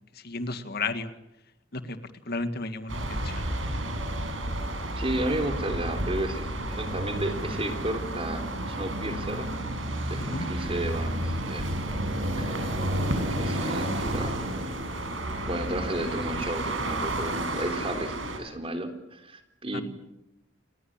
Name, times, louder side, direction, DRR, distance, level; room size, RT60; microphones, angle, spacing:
voice 1, 0.2-1.1 1.7-2.0 2.3-3.5 10.3-10.5 19.7-19.8, left 3 dB, 55° left, 9 dB, 1.9 m, -33 dB
sound 1, 2.9-18.4, right 1 dB, 80° right, 6.6 m, -31 dB
voice 2, 5.0-9.5 10.1-11.8 12.4-12.6 13.4-14.7 15.5-19.8, right 1 dB, 30° right, 6 dB, 3.6 m, -33 dB
30.0 x 20.5 x 8.8 m, 0.86 s
head